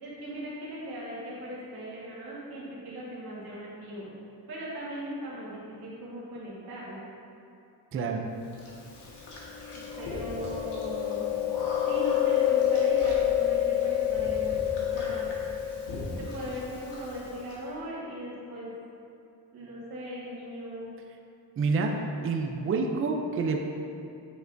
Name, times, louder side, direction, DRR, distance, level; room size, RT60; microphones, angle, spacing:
voice 1, 0.0-4.1 4.5-7.1 9.7-11.4 11.8-14.7 14.9-15.3 16.2-18.7 19.5-20.9, right 1 dB, 60° right, -7 dB, 1.7 m, -39 dB
voice 2, 7.9-8.2 21.6-21.9 22.2-23.6, right 4 dB, 35° right, 2 dB, 0.5 m, -27 dB
Chewing mastication, 8.6-17.5, left 10 dB, 85° left, 1.7 m, -28 dB
8.4 x 6.8 x 2.6 m, 2.6 s
cardioid pair, 165°, 40 cm